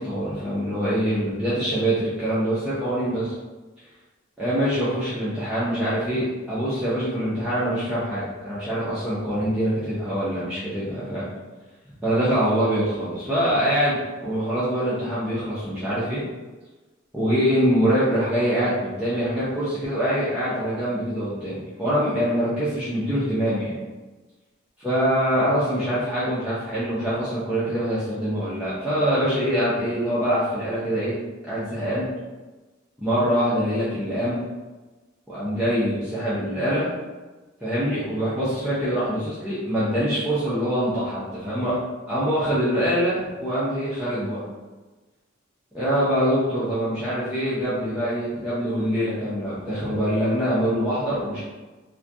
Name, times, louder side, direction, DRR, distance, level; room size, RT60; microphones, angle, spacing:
voice 1, 0.0-3.3 4.4-11.3 12.0-16.2 17.1-23.8 24.8-31.2 31.4-32.1 33.0-34.4 35.3-36.9 37.6-41.8 42.1-44.4 45.7-51.4, equal, 5° right, -12 dB, 0.5 m, -24 dB
2.3 x 2.2 x 2.6 m, 1.2 s
head